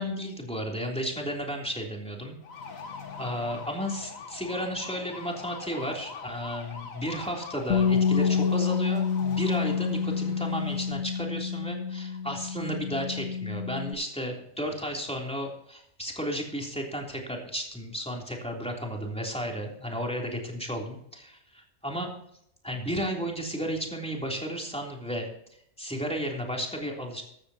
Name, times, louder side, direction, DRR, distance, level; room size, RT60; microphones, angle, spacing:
voice 1, 0.0-2.3 3.1-22.1 22.6-25.3 25.8-27.2, equal, 5° left, -1 dB, 3.2 m, -33 dB
sound 1, 2.4-10.9, left 5 dB, 70° left, 1.7 m, -43 dB
Bass guitar, 7.7-13.9, left 6 dB, 85° left, 1.5 m, -28 dB
14.5 x 13.5 x 2.9 m, 0.72 s
omnidirectional pair, 1.5 m